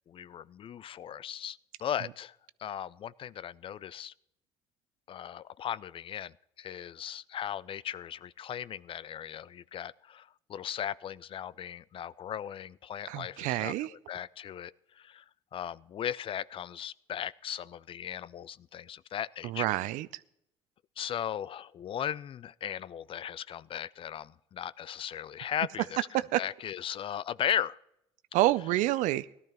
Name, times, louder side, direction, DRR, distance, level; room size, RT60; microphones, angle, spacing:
voice 1, 0.1-4.1 5.1-15.2 15.5-19.7 21.0-26.0 26.4-27.8, left 9 dB, 40° left, 21 dB, 0.4 m, -37 dB
voice 2, 13.1-13.9 19.4-20.1 26.1-26.4 28.3-29.3, right 16 dB, 65° right, 18 dB, 0.5 m, -28 dB
17.5 x 12.5 x 3.0 m, 0.78 s
hypercardioid pair, 65°, 14 cm